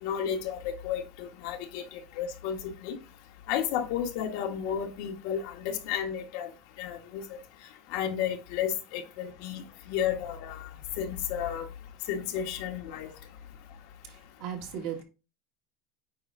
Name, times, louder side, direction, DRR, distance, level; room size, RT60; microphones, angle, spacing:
voice 1, 0.0-1.8 2.2-3.0 3.5-6.5 6.8-7.2 7.9-9.6 9.9-10.7 11.0-11.6 12.1-13.1, left 9 dB, 65° left, 3 dB, 1.5 m, -32 dB
voice 2, 14.0-15.0, right 8 dB, 60° right, 2 dB, 2.0 m, -37 dB
8.6 x 4.5 x 2.7 m, 0.29 s
supercardioid pair, 150°, 0 cm